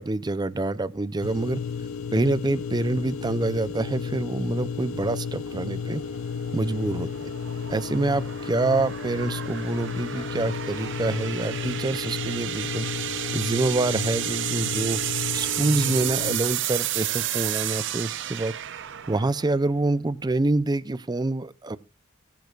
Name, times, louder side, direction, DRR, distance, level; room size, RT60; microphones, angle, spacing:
voice 1, 0.0-1.6 2.1-6.0 6.5-7.1 7.7-12.9 13.3-15.0 15.3-18.6 19.1-21.8, right 2 dB, 20° right, 0.5 m, -26 dB
sound 1, 1.2-16.4, left 6 dB, 90° left, 0.6 m, -33 dB
sound 2, 1.6-20.6, right 12 dB, 65° right, 0.7 m, -33 dB
sound 3, 8.4-8.5 9.0-9.2 9.6-9.9 10.1-10.9 11.2-11.7, left 2 dB, 30° left, 1.6 m, -50 dB
20.5 x 10.5 x 2.4 m
head